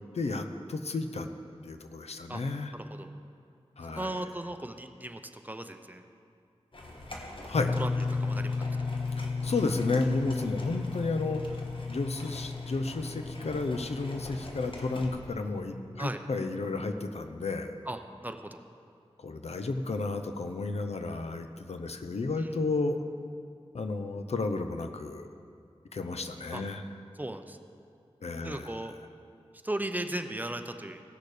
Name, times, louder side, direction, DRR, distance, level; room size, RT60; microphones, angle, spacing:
voice 1, 0.1-1.3 1.6-2.7 3.8-4.2 7.4-7.7 9.2-11.4 11.9-17.8 19.2-23.0 23.7-25.3 25.9-26.8 28.2-28.7, left 3 dB, 85° left, 7 dB, 0.7 m, -32 dB
voice 2, 2.7-3.1 3.8-6.0 7.8-8.7 16.0-16.2 17.9-18.6 22.4-22.5 26.5-26.6 27.2-27.6 28.4-28.9 29.6-31.0, right 1 dB, 15° right, 7 dB, 0.8 m, -37 dB
sound 1, 6.7-15.1, left 1 dB, 55° left, 1.5 m, -45 dB
sound 2, 7.5-17.1, left 4 dB, 40° left, 0.4 m, -35 dB
16.5 x 6.6 x 5.0 m, 2.4 s
wide cardioid pair, 50°, 11 cm